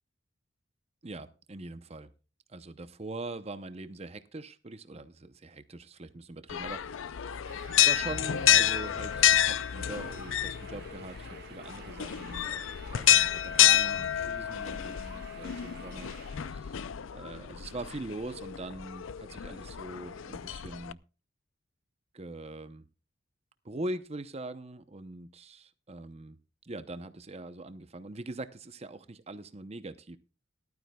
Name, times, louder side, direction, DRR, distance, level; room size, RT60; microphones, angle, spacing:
voice 1, 1.0-2.1 2.5-7.2 7.8-12.6 12.9-16.1 16.5-16.8 17.1-21.0 22.1-22.8 23.6-26.4 26.6-30.2, right 2 dB, 30° right, 11 dB, 0.7 m, -42 dB
sound 1, 6.5-20.9, left 11 dB, 80° left, 0.5 m, -29 dB
sound 2, 7.4-16.5, right 6 dB, 55° right, 1.7 m, -52 dB
18.5 x 12.5 x 2.3 m, 0.33 s
head